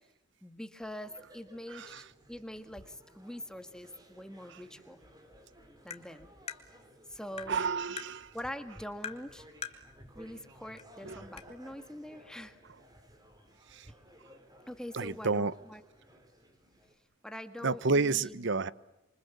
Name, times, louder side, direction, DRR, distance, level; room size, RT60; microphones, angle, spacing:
voice 1, 0.4-5.0 5.8-6.3 7.1-7.6 8.3-9.5 10.1-12.6 14.7-15.8 17.2-18.5, equal, 5° left, 9 dB, 1.7 m, -44 dB
sound 1, 1.0-16.9, equal, 20° right, 3.7 m, -57 dB
voice 2, 1.7-2.0 4.5-4.6 7.5-8.3 11.0-11.3 13.7-13.9 14.9-15.5 17.6-18.7, right 4 dB, 60° right, 18 dB, 0.9 m, -30 dB
Tap, 5.9-6.0 6.5-6.6 7.4-7.5 8.0-8.1 9.0-9.2 9.6-9.8 10.8-10.9 11.4-11.5, left 6 dB, 30° left, 2.0 m, -40 dB
27.0 x 25.5 x 8.3 m, 0.92 s
head